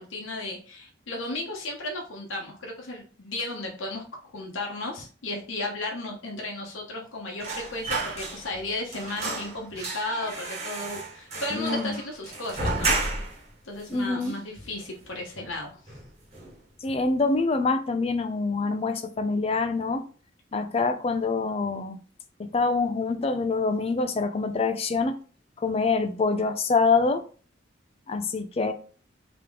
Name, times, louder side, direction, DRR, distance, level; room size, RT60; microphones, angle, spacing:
voice 1, 0.0-4.0 4.3-13.0 13.6-15.8, left 2 dB, 85° left, 0.9 m, -34 dB
sound 1, 7.4-8.7 8.9-13.5 13.8-13.9 14.2-15.0 15.3-15.6 15.9-16.6 16.9-17.0, right 3 dB, 35° right, 1.3 m, -32 dB
voice 2, 11.5-12.0 13.9-14.4 16.8-20.1 20.5-22.0 22.4-25.2 25.6-27.2 28.1-28.7, left 4 dB, 30° left, 0.4 m, -25 dB
3.5 x 3.0 x 3.6 m
head